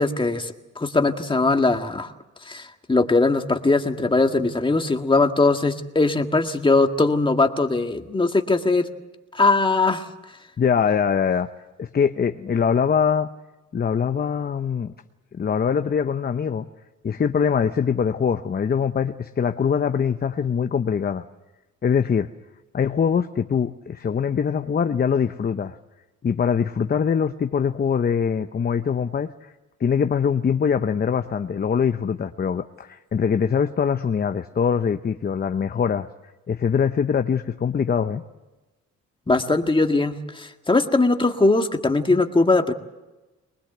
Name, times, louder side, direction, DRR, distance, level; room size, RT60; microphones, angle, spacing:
voice 1, 0.0-2.1 2.5-8.9 9.3-10.1 39.3-42.7, left 3 dB, 15° left, 5 dB, 1.8 m, -20 dB
voice 2, 10.6-11.5 11.8-13.3 13.7-14.9 15.3-16.7 17.0-21.2 21.8-22.3 22.7-25.8 26.2-29.5 29.8-36.1 36.5-38.2, left 7 dB, 30° left, 8 dB, 0.8 m, -23 dB
23.0 x 20.0 x 8.0 m, 1.1 s
cardioid pair, 90°, 30 cm